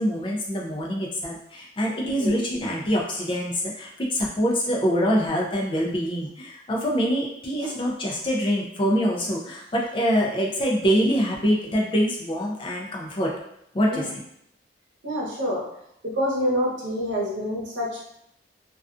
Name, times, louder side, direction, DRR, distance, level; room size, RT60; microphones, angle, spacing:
voice 1, 0.0-13.3 13.7-14.1, equal, 25° left, -2 dB, 0.3 m, -25 dB
voice 2, 2.0-2.4 7.6-7.7 13.8-14.1 15.0-15.6 16.2-18.0, equal, 80° right, -4 dB, 0.8 m, -27 dB
2.3 x 2.3 x 2.4 m, 0.76 s
head